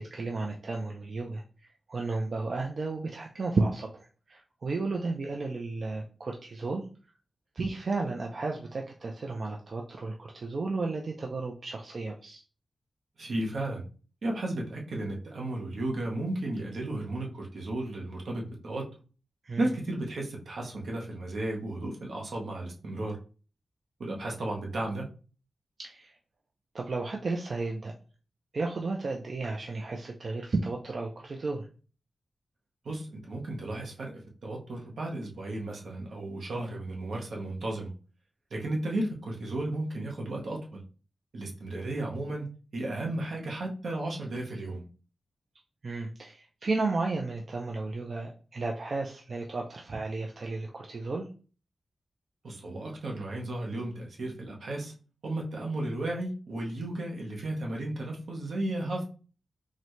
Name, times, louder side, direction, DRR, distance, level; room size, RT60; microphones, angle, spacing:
voice 1, 0.0-1.4 1.9-6.8 7.5-12.4 19.4-19.7 25.8-26.1 26.7-27.9 28.5-31.7 45.8-51.3, right 3 dB, 45° right, 0 dB, 0.4 m, -33 dB
voice 2, 13.2-13.8 14.2-18.9 19.6-23.2 24.0-25.1 32.8-37.9 38.5-40.8 41.3-44.9 52.4-54.9 55.2-59.0, right 1 dB, 70° right, 0 dB, 0.8 m, -34 dB
4.0 x 2.1 x 3.0 m, 0.37 s
wide cardioid pair, 155°, 0 cm